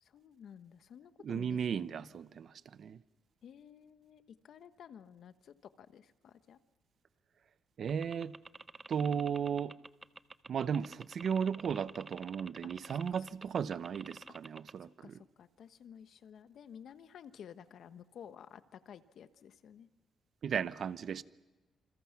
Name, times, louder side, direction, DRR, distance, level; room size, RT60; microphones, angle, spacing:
voice 1, 0.0-2.1 3.4-6.6 12.9-13.0 15.0-19.9, left 8 dB, 65° left, 1.2 m, -53 dB
voice 2, 1.2-3.0 7.8-8.4 8.9-9.8 10.5-15.2 20.4-21.2, right 7 dB, 55° right, 0.8 m, -35 dB
sound 1, 7.9-14.7, right 3 dB, 20° right, 0.8 m, -49 dB
28.0 x 27.5 x 5.9 m
cardioid pair, 130°, 0 cm